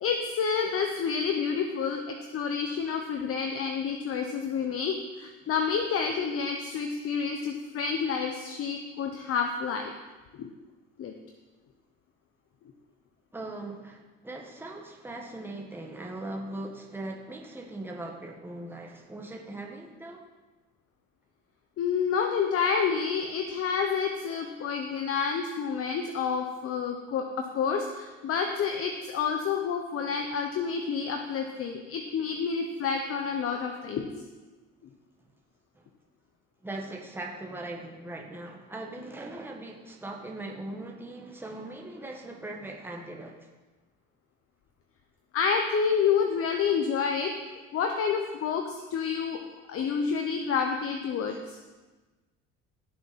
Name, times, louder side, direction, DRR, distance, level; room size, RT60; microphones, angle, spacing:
voice 1, 0.0-9.9 10.3-10.5 11.0-11.1 21.8-34.3 45.3-47.3 47.7-49.4 49.7-51.6, left 6 dB, 50° left, 4 dB, 1.1 m, -29 dB
voice 2, 13.3-20.2 35.7-35.8 36.6-43.5, right 2 dB, 5° right, 0 dB, 1.6 m, -40 dB
16.0 x 7.0 x 4.4 m, 1.2 s
supercardioid pair, 100°, 29 cm